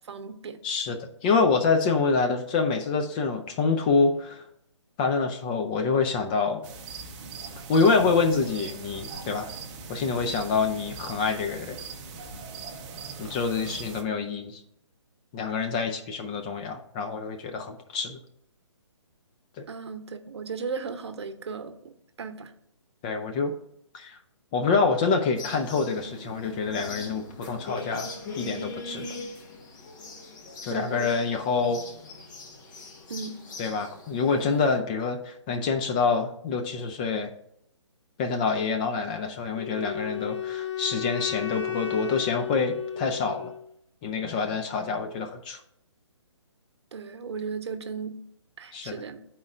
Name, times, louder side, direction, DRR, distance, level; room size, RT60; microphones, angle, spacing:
voice 1, 0.1-0.6 19.7-21.9 22.2-22.5 30.7-31.1 33.1-33.4 46.9-48.2 48.6-49.2, right 5 dB, 65° right, 9 dB, 0.7 m, -36 dB
voice 2, 0.6-4.5 5.0-6.6 7.7-9.5 9.9-11.8 13.2-14.6 15.3-18.2 23.0-23.5 23.9-24.2 24.5-29.1 30.6-31.8 33.6-37.3 38.2-43.5 44.0-45.6 48.7-49.0, left 4 dB, 15° left, 5 dB, 0.3 m, -26 dB
sound 1, 6.6-14.0, right 4 dB, 20° right, 0.6 m, -40 dB
sound 2, 25.3-34.8, left 3 dB, 40° left, 1.2 m, -41 dB
Wind instrument woodwind instrument, 39.5-43.7, left 10 dB, 70° left, 0.7 m, -33 dB
12.0 x 4.3 x 2.5 m, 0.72 s
hypercardioid pair, 145°, 15 cm